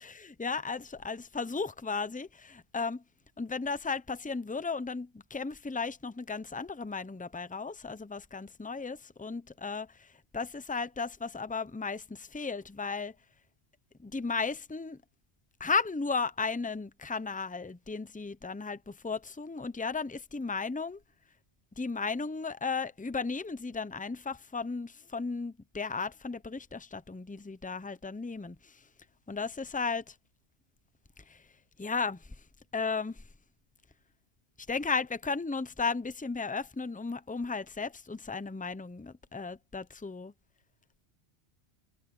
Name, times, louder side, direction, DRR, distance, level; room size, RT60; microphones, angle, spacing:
voice 1, 0.0-3.0 3.4-10.1 10.3-13.1 14.0-15.0 15.6-21.0 21.8-28.7 29.3-30.1 31.3-31.4 31.8-32.2 32.7-33.2 34.7-40.3, left 4 dB, 10° left, 0.4 m, -35 dB
omnidirectional pair, 1.1 m